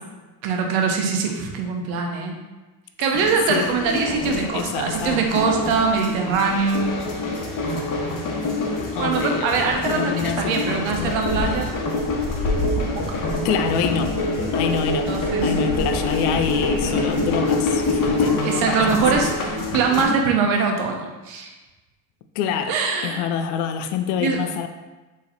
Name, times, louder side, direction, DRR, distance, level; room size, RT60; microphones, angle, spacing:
voice 1, 0.4-2.4 3.0-6.9 9.0-11.7 12.9-13.2 15.1-15.6 18.4-19.3 19.7-21.5 22.7-23.2 24.2-24.4, right 5 dB, 80° right, 2 dB, 0.9 m, -22 dB
sound 1, 3.1-20.0, left 2 dB, 40° left, 1.1 m, -25 dB
voice 2, 3.5-5.2 8.9-11.2 13.4-14.2 14.5-19.0 22.4-22.8 23.0-24.7, left 7 dB, 90° left, 8 dB, 0.6 m, -27 dB
4.1 x 3.1 x 4.0 m, 1.2 s
supercardioid pair, 90°, 46 cm